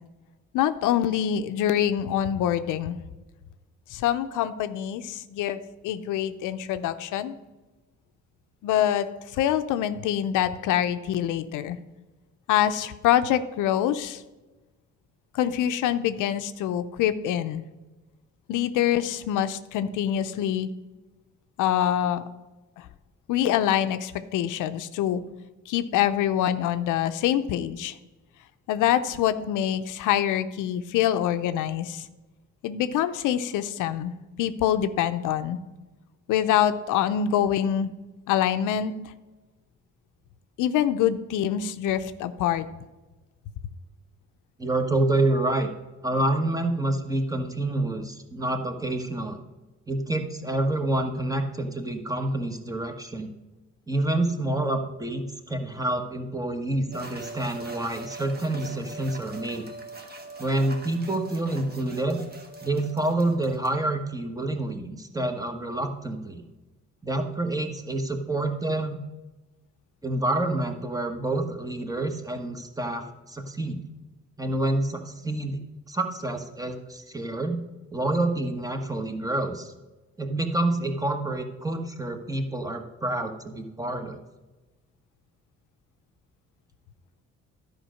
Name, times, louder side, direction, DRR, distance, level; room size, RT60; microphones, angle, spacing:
voice 1, 0.5-3.0 3.9-7.3 8.6-9.1 9.3-11.8 12.5-14.2 15.3-17.6 18.5-20.7 21.6-22.2 22.8-22.9 23.3-25.2 25.7-28.0 28.7-32.1 32.6-34.1 34.4-35.6 36.3-37.9 38.3-38.9 40.6-42.7, left 10 dB, 90° left, 11 dB, 0.6 m, -25 dB
voice 2, 44.6-45.7 46.0-49.4 49.9-53.3 53.9-59.7 60.4-62.3 62.6-66.4 67.0-69.0 70.0-73.8 74.4-75.6 75.9-77.6 77.9-79.7 80.2-84.2, right 2 dB, 10° right, 5 dB, 1.2 m, -28 dB
sound 1, 56.9-63.7, right 2 dB, 30° right, 1.4 m, -42 dB
11.0 x 5.2 x 6.4 m, 1.1 s
cardioid pair, 90°, 30 cm